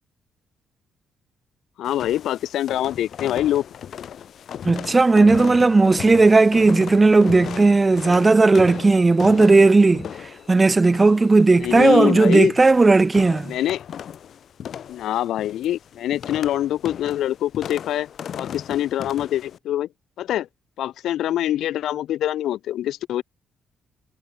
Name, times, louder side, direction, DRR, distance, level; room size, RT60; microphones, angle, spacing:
voice 1, 1.8-3.6 11.5-12.5 13.4-13.8 14.9-18.1 18.4-19.9 20.2-20.5 20.8-23.2, left 12 dB, 80° left, 1.0 m, -24 dB
sound 1, 1.8-19.6, left 9 dB, 60° left, 6.2 m, -37 dB
voice 2, 4.6-13.5, right 3 dB, 25° right, 0.6 m, -15 dB
cardioid pair, 90°, 0 cm